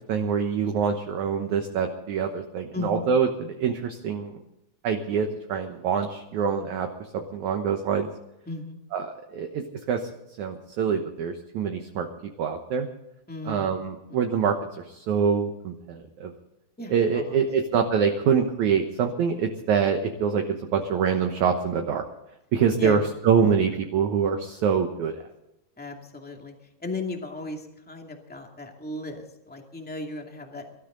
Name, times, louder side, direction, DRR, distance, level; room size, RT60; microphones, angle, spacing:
voice 1, 0.1-4.3 4.8-6.9 7.1-8.1 8.9-10.0 10.4-12.1 12.4-12.9 13.5-16.3 16.9-20.4 20.7-22.0 22.5-25.1, right 6 dB, 65° right, 4 dB, 2.1 m, -25 dB
voice 2, 2.7-3.1 8.4-8.8 13.3-13.7 14.1-14.2 16.8-17.6 22.8-23.0 25.8-26.5 26.8-30.7, left 2 dB, 5° left, 1 dB, 1.4 m, -36 dB
23.5 x 13.5 x 3.9 m, 0.91 s
omnidirectional pair, 4.3 m